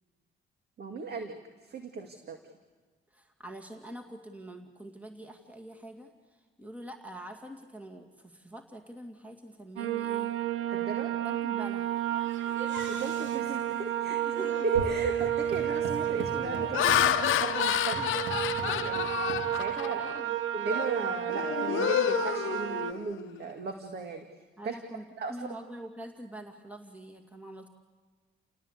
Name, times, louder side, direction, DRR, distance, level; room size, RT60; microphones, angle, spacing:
voice 1, 0.8-2.4 10.7-11.1 12.9-14.2 14.6-18.1 18.7-20.0 20.5-24.3 24.6-24.7 25.2-25.5, right 4 dB, 55° right, 5 dB, 2.1 m, -36 dB
voice 2, 3.1-10.3 11.2-12.1 14.1-14.7 20.0-20.4 24.6-27.7, right 1 dB, 5° right, 4 dB, 2.4 m, -45 dB
sound 1, 9.8-22.9, right 11 dB, 85° right, 0.9 m, -32 dB
sound 2, 12.1-19.5, right 3 dB, 70° right, 3.1 m, -42 dB
Laughter, 14.6-14.9 15.5-15.8 16.4-20.2 20.7-20.9 21.3-23.2, left 13 dB, 85° left, 0.8 m, -30 dB
29.5 x 18.5 x 8.4 m, 1.4 s
cardioid pair, 90°, 20 cm